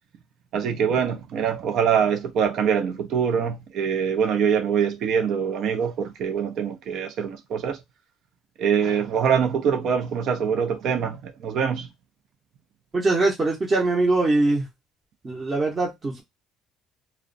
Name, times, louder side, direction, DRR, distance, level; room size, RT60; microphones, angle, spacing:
voice 1, 0.5-7.8 8.6-11.9, right 7 dB, 65° right, 0.5 m, -24 dB
voice 2, 12.9-14.6 15.2-16.2, right 2 dB, 25° right, 0.7 m, -22 dB
2.3 x 2.1 x 2.5 m
cardioid pair, 105°, 0 cm